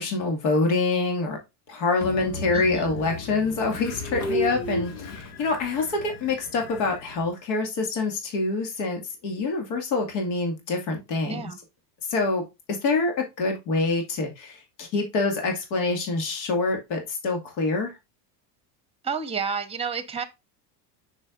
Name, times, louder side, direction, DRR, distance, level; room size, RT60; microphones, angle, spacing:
voice 1, 0.0-1.4 1.7-11.5 12.1-12.4 12.7-18.0, left 3 dB, 70° left, 2.2 m, -26 dB
Train, 2.0-7.3, left 2 dB, 90° left, 2.2 m, -33 dB
voice 2, 2.5-2.9 11.2-11.6 19.0-20.2, right 6 dB, 10° right, 1.0 m, -30 dB
6.4 x 6.0 x 2.5 m
supercardioid pair, 115°, 49 cm